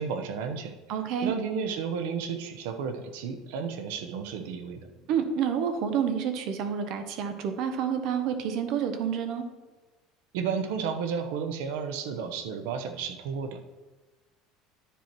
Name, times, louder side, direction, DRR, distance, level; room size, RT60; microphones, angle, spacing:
voice 1, 0.0-4.9 10.3-13.6, right 6 dB, 90° right, 7 dB, 0.8 m, -32 dB
voice 2, 0.9-1.3 5.1-9.4, right 8 dB, 55° right, 8 dB, 1.0 m, -29 dB
10.0 x 4.5 x 4.5 m, 1.2 s
cardioid pair, 155°, 0 cm